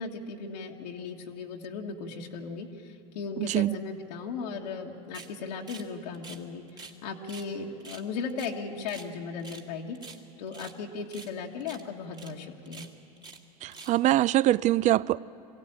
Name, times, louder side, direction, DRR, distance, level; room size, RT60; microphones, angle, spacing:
voice 1, 0.0-10.0 10.4-12.9, left 5 dB, 80° left, -1 dB, 1.7 m, -37 dB
voice 2, 3.4-3.8 13.6-15.2, right 14 dB, 35° right, 20 dB, 0.4 m, -23 dB
sound 1, 5.1-5.3 5.7-5.9 6.1-7.0 7.3-7.5 7.8-9.1 9.4-9.7 9.9-10.8 11.1-11.3 11.6-11.8 12.1-12.3 12.6-13.4 13.7-14.0, right 3 dB, 20° right, 1.6 m, -47 dB
22.5 x 16.5 x 8.8 m, 2.8 s
hypercardioid pair, 105°, 21 cm